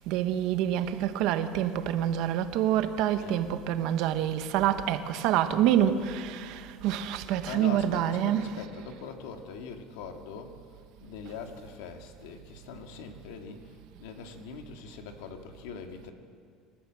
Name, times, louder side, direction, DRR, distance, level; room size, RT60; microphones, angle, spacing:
voice 1, 0.1-8.5, right 10 dB, 65° right, 1.3 m, -27 dB
voice 2, 7.5-10.6 11.0-16.1, left 6 dB, 90° left, 2.1 m, -42 dB
26.5 x 13.5 x 7.7 m
cardioid pair, 150°, 0 cm